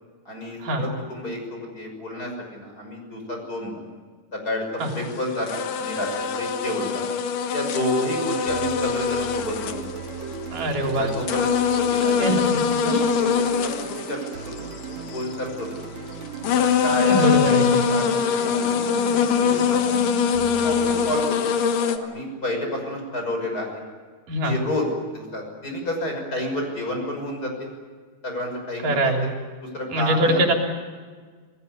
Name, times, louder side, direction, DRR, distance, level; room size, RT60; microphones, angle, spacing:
voice 1, 0.2-3.7 4.3-6.1 6.4-7.1 7.5-9.9 10.8-12.5 12.8-14.2 14.4-14.6 14.9-15.8 16.0-16.1 16.8-17.3 17.7-18.7 19.2-20.0 20.6-21.4 21.9-23.7 24.4-24.8 25.1-27.7 28.2-29.3 29.6-30.5, left 1 dB, 25° left, 2 dB, 6.3 m, -30 dB
sound 1, 4.9-5.1 5.5-10.5 10.9-15.3 16.1-16.2 16.4-22.0, left 6 dB, 80° left, 3.0 m, -23 dB
sound 2, 8.5-21.2, right 6 dB, 60° right, 2.7 m, -36 dB
voice 2, 10.5-11.1 12.2-12.3 12.9-13.0 17.0-17.8 24.3-24.6 28.8-29.3 29.9-30.5, right 1 dB, 80° right, 2 dB, 4.9 m, -22 dB
28.0 x 19.0 x 9.6 m, 1.5 s
omnidirectional pair, 3.8 m